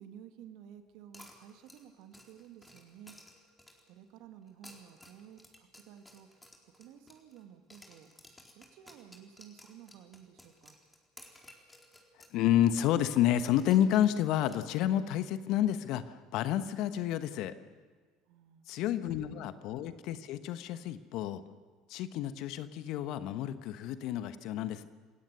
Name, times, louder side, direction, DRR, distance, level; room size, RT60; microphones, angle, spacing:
voice 1, 0.0-3.2 3.9-6.3 6.6-8.1 8.5-10.8 18.3-18.9 19.3-19.5, right 9 dB, 65° right, 7 dB, 2.0 m, -53 dB
sound 1, 1.1-4.0 4.5-7.4 7.7-12.4 12.7-12.8 13.4-15.1, left 1 dB, 10° left, 4.2 m, -56 dB
voice 2, 12.3-17.5 18.7-21.4 21.9-24.9, left 11 dB, 60° left, 12 dB, 1.1 m, -30 dB
28.5 x 16.5 x 6.9 m, 1.5 s
hypercardioid pair, 65°, 0 cm